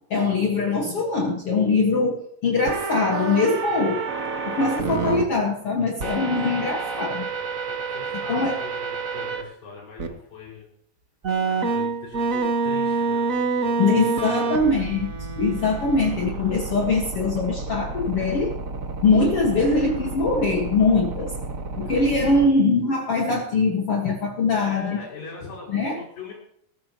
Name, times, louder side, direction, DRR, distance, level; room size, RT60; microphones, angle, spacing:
voice 1, 0.1-4.0 4.4-7.3 8.3-8.6 13.8-18.6 19.0-21.3 21.8-25.0 25.7-26.0, left 3 dB, 50° left, 1 dB, 2.3 m, -22 dB
sound 1, 2.7-5.2 6.0-9.4 10.0-10.1 11.2-22.5, right 4 dB, 85° right, 0.7 m, -28 dB
voice 2, 3.7-4.0 7.3-10.7 11.4-14.7 16.0-16.1 21.8-22.0 24.6-26.3, left 4 dB, 70° left, -4 dB, 7.1 m, -42 dB
21.5 x 14.5 x 3.1 m, 0.67 s
omnidirectional pair, 4.1 m